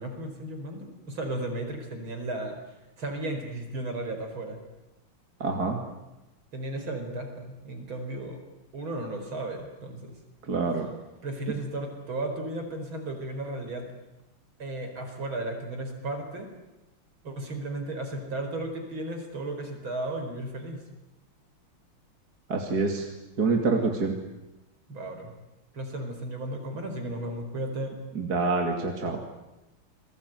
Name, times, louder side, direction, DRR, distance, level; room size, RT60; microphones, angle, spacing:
voice 1, 0.0-2.6 3.0-4.6 6.5-8.4 8.7-10.1 11.2-13.9 14.6-16.5 17.2-20.8 24.9-25.3 25.7-27.9, right 1 dB, 70° right, 5 dB, 5.5 m, -34 dB
voice 2, 5.4-5.8 10.5-10.9 22.5-23.1 23.4-24.1 28.1-29.2, right 3 dB, 45° right, 2 dB, 3.1 m, -26 dB
29.0 x 22.0 x 9.3 m, 0.99 s
omnidirectional pair, 2.3 m